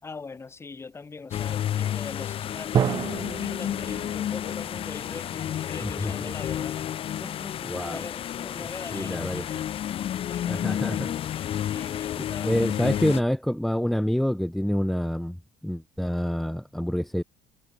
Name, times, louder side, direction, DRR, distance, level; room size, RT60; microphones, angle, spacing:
voice 1, 0.0-6.8 7.2-9.7 10.3-11.0 11.7-13.2, left 4 dB, 20° left, 4.2 m, -41 dB
sound 1, 1.3-13.2, left 10 dB, 45° left, 1.1 m, -31 dB
Drum, 2.7-6.4, right 8 dB, 30° right, 0.5 m, -31 dB
voice 2, 5.8-6.3 7.7-8.0 8.9-9.5 10.5-11.1 12.2-15.4 15.6-17.2, equal, ahead, 1.5 m, -27 dB
cardioid pair, 140°, 14 cm